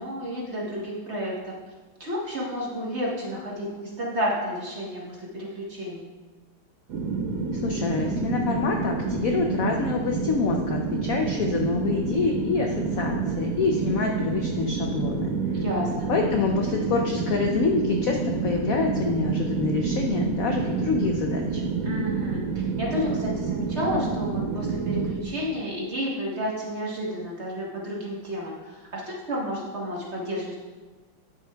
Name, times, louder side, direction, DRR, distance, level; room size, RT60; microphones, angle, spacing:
voice 1, 0.0-1.5 2.0-6.1 15.5-16.1 21.8-22.4 22.8-30.6, equal, 40° right, -4 dB, 1.3 m, -31 dB
sound 1, 6.9-25.2, right 4 dB, 65° right, 0.9 m, -28 dB
voice 2, 7.5-15.3 16.1-21.6, left 4 dB, 70° left, 2 dB, 0.8 m, -26 dB
9.3 x 7.8 x 2.3 m, 1.3 s
omnidirectional pair, 2.1 m